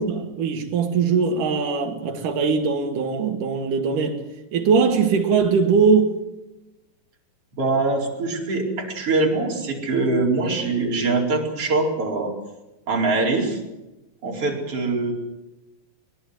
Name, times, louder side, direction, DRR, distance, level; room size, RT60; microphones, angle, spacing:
voice 1, 0.0-4.2 4.5-6.2, right 5 dB, 65° right, 3.7 m, -21 dB
voice 2, 7.6-12.3 12.9-13.6 14.2-15.1, right 3 dB, 40° right, 5.3 m, -23 dB
23.0 x 21.5 x 8.0 m
omnidirectional pair, 4.0 m